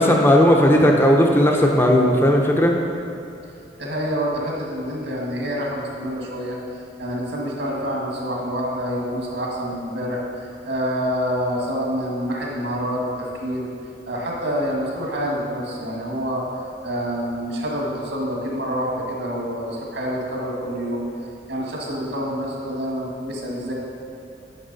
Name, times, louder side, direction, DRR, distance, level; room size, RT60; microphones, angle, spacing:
voice 1, 0.0-2.7, equal, 15° left, 1 dB, 0.7 m, -16 dB
voice 2, 3.8-6.6 7.0-13.7 14.1-16.4 16.8-21.1 21.5-23.7, equal, 75° right, -2 dB, 1.7 m, -27 dB
9.3 x 6.0 x 4.1 m, 2.6 s
head